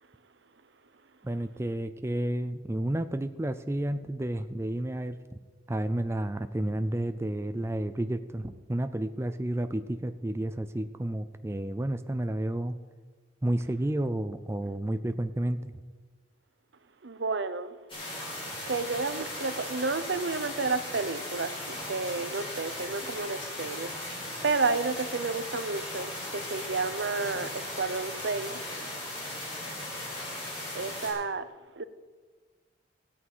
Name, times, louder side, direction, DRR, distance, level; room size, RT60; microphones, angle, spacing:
voice 1, 1.2-5.2 5.7-12.7 13.4-15.7, right 1 dB, 15° right, 0.4 m, -31 dB
voice 2, 17.0-17.7 18.7-28.6 30.7-31.5 31.8-31.9, right 4 dB, 65° right, 0.7 m, -31 dB
sound 1, 17.9-31.1, left 1 dB, 30° left, 5.1 m, -38 dB
16.0 x 8.6 x 5.6 m
head